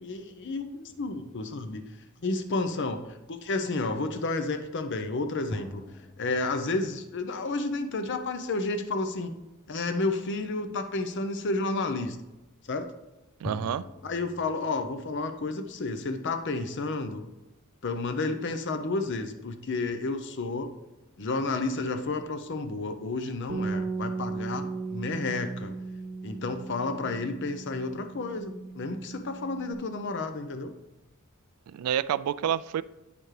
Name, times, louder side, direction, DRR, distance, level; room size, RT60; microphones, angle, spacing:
voice 1, 0.0-1.9 2.2-5.8 6.2-9.3 9.7-12.2 12.7-12.9 14.0-17.3 17.8-20.7 21.2-25.7 26.2-30.7, left 3 dB, 55° left, 8 dB, 0.7 m, -31 dB
sound 1, 0.9-2.5 5.5-8.2 13.4-16.4, left 1 dB, 10° left, 0.4 m, -45 dB
voice 2, 13.4-13.9 31.7-32.8, right 9 dB, 85° right, 17 dB, 0.3 m, -28 dB
Bass guitar, 23.5-29.7, right 4 dB, 65° right, 1.0 m, -36 dB
8.8 x 6.9 x 3.2 m, 1.0 s
head